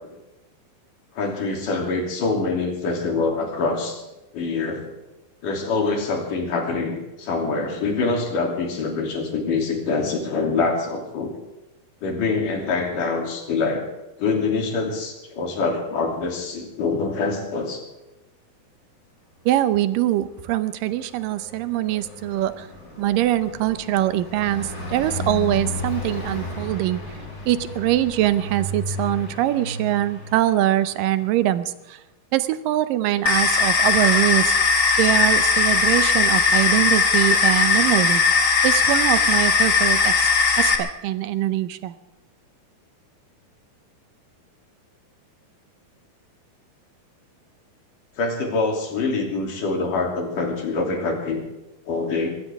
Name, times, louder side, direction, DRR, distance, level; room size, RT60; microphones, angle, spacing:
voice 1, 1.2-4.0 4.3-4.9 5.4-11.3 12.0-13.8 14.2-17.8 48.2-51.4 51.9-52.3, left 3 dB, 60° left, 1 dB, 4.5 m, -25 dB
voice 2, 19.5-22.7 23.0-27.0 27.5-32.0 32.3-34.5 35.0-38.2 38.6-40.3 40.6-41.9, right 13 dB, 75° right, 13 dB, 2.3 m, -23 dB
Car passing by, 20.3-31.3, left 1 dB, 25° left, 4.8 m, -34 dB
sound 1, 33.3-40.8, left 4 dB, 40° left, 1.2 m, -18 dB
23.0 x 16.5 x 3.6 m, 1.0 s
omnidirectional pair, 4.2 m